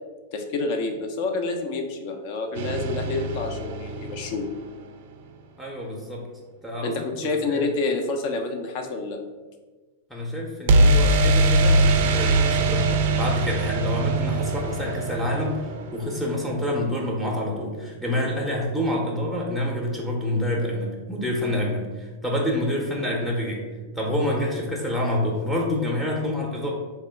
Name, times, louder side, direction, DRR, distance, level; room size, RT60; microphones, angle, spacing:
voice 1, 0.3-4.5 6.8-9.2, left 3 dB, 55° left, 4 dB, 0.5 m, -28 dB
sound 1, 2.6-4.6 10.7-16.5, right 2 dB, 60° right, 0.3 m, -22 dB
voice 2, 5.6-6.3 6.6-7.1 7.5-7.7 10.1-23.7 23.9-26.7, left 1 dB, 5° left, -2 dB, 0.6 m, -27 dB
3.5 x 2.2 x 3.3 m, 1.3 s
hypercardioid pair, 100°, 0 cm